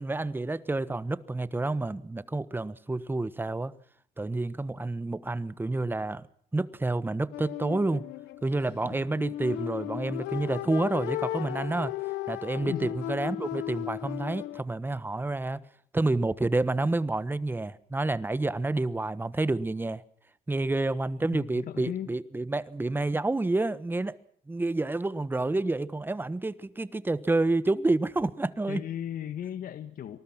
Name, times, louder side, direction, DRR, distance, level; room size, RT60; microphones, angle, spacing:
voice 1, 0.0-3.7 4.2-6.3 6.5-8.0 8.4-11.9 12.3-15.6 15.9-20.0 20.5-24.2 24.5-28.8, right 2 dB, 10° right, 1.3 m, -29 dB
sound 1, 7.3-14.6, left 16 dB, 80° left, 0.9 m, -35 dB
voice 2, 21.3-22.1 28.7-30.2, left 10 dB, 55° left, 1.8 m, -36 dB
26.5 x 20.0 x 6.0 m
cardioid pair, 110°, 17 cm